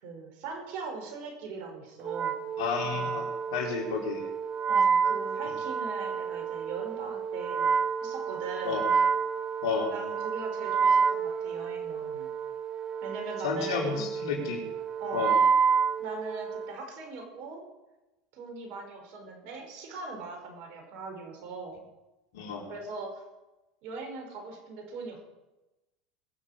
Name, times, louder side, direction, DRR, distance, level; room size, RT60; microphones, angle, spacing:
voice 1, 0.0-2.3 4.7-8.8 9.9-12.3 13.0-13.9 15.0-15.3 16.0-17.6 18.3-21.8 22.7-23.2 23.8-25.2, right 4 dB, 65° right, 3 dB, 5.3 m, -40 dB
Wind instrument woodwind instrument, 2.0-16.8, right 6 dB, 35° right, 0.9 m, -29 dB
voice 2, 2.6-4.2 8.6-8.8 9.6-9.9 13.4-14.7 15.1-15.4 22.3-22.7, left 5 dB, 75° left, -1 dB, 4.8 m, -31 dB
22.0 x 7.3 x 6.8 m, 1.0 s
hypercardioid pair, 95°, 2 cm